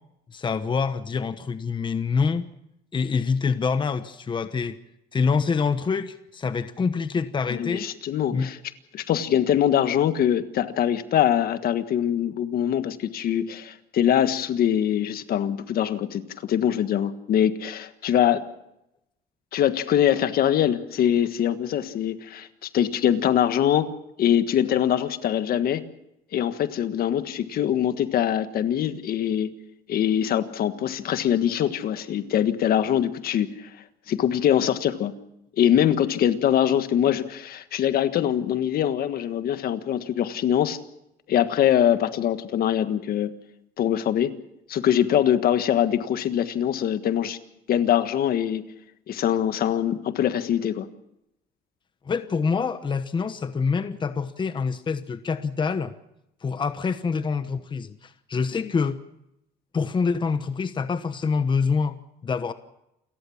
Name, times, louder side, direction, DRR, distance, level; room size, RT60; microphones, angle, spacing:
voice 1, 0.3-2.5 2.9-4.8 5.1-7.9 8.3-8.5 52.0-55.9 56.4-59.0 59.7-62.5, left 5 dB, 30° left, 11 dB, 1.1 m, -26 dB
voice 2, 7.5-8.6 8.9-18.4 19.5-23.9 24.2-25.8 26.3-29.5 29.9-33.7 34.1-35.1 35.6-40.8 41.3-43.3 43.8-44.3 44.7-47.4 47.7-48.6 49.1-50.9, left 10 dB, 60° left, 10 dB, 1.5 m, -23 dB
28.5 x 14.5 x 7.2 m, 0.84 s
cardioid pair, 110°, 17 cm